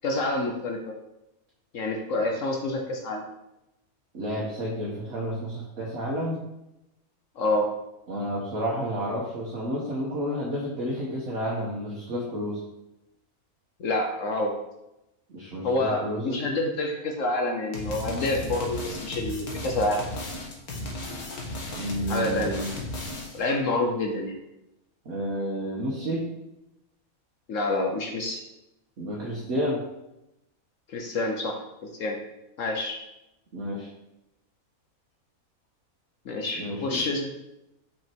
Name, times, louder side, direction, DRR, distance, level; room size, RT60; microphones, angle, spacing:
voice 1, 0.0-0.9 1.7-3.2 7.4-7.7 13.8-14.5 15.6-20.0 22.1-22.7 23.3-24.4 27.5-28.4 30.9-32.2 32.6-33.0 36.3-37.3, left 2 dB, 65° left, 2 dB, 1.2 m, -27 dB
voice 2, 4.1-6.4 8.1-12.6 15.3-16.4 21.7-22.8 25.0-26.2 29.0-29.8 33.5-33.9 36.5-37.0, equal, 60° right, -5 dB, 1.5 m, -31 dB
sound 1, 17.7-23.5, left 1 dB, 80° left, 1.8 m, -35 dB
6.1 x 5.1 x 4.5 m, 0.91 s
omnidirectional pair, 1.6 m